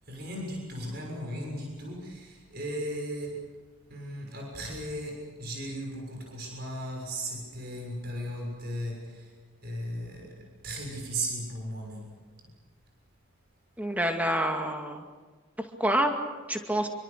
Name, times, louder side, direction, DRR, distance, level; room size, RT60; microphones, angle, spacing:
voice 1, 0.0-3.4 3.9-9.3 9.6-12.1, right 1 dB, 50° right, 0 dB, 6.6 m, -36 dB
voice 2, 13.8-15.1 15.6-16.1 16.5-16.9, right 1 dB, 5° right, 3 dB, 2.2 m, -27 dB
27.0 x 23.5 x 6.8 m, 1.3 s
head